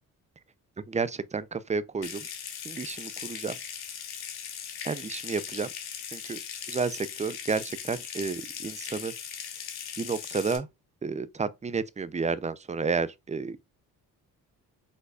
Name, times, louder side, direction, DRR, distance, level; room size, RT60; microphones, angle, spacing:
voice 1, 0.9-2.3 2.6-3.6 4.8-5.7 6.1-6.4 6.7-9.1 10.0-10.7 11.0-13.7, right 4 dB, 20° right, 0.5 m, -31 dB
Water tap faucet / Sink (filling or washing) / Trickle dribble, 2.0-10.6, left 8 dB, 80° left, 1.2 m, -39 dB
5.2 x 4.0 x 2.4 m
cardioid pair, 65°, 37 cm